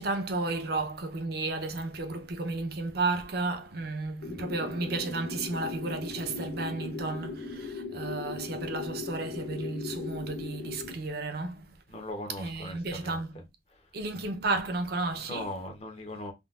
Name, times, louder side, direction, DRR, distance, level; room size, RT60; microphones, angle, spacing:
voice 1, 0.0-11.7 12.4-13.4 13.9-15.5, right 3 dB, 55° right, 0.6 m, -33 dB
sound 1, 4.2-10.9, left 4 dB, 90° left, 0.9 m, -38 dB
voice 2, 11.9-13.2 15.1-16.3, left 1 dB, 30° left, 0.7 m, -39 dB
3.7 x 2.2 x 2.3 m
head